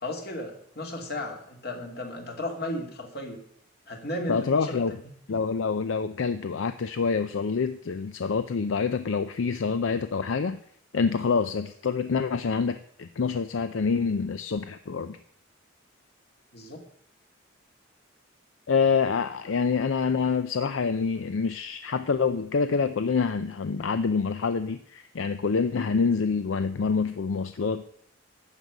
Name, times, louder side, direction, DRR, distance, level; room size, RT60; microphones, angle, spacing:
voice 1, 0.0-3.4 3.9-4.8 5.3-5.4 16.5-16.8, left 1 dB, 50° left, 2 dB, 2.4 m, -35 dB
voice 2, 4.3-5.0 5.3-10.6 10.9-15.2 18.7-27.8, left 5 dB, 75° left, 11 dB, 0.5 m, -26 dB
12.5 x 5.3 x 8.1 m, 0.66 s
head